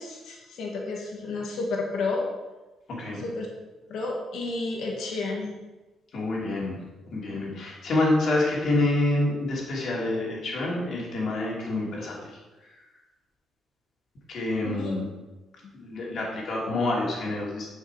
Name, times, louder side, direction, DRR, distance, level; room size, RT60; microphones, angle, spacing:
voice 1, 0.0-2.2 3.2-3.5 3.9-5.6 14.6-14.9 15.6-15.7, left 3 dB, 75° left, -1 dB, 1.8 m, -31 dB
voice 2, 6.1-6.8 7.1-12.2 14.3-15.0 15.7-17.7, left 2 dB, 60° left, -3 dB, 2.7 m, -27 dB
7.7 x 5.7 x 4.8 m, 1.1 s
cardioid pair, 90°, 0 cm